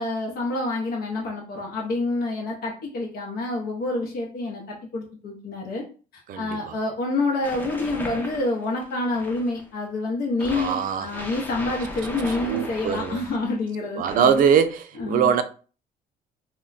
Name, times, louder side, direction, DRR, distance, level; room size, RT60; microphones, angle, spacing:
voice 1, 0.0-5.8 6.4-14.4 15.0-15.3, left 2 dB, 65° left, 0.8 m, -27 dB
voice 2, 6.3-6.8 10.5-11.1 12.4-13.2 14.0-15.4, right 7 dB, 55° right, 0.4 m, -22 dB
sound 1, 7.4-9.7 10.4-13.5 14.1-14.7, left 1 dB, 10° left, 0.5 m, -37 dB
2.2 x 2.1 x 3.8 m
cardioid pair, 110°, 17 cm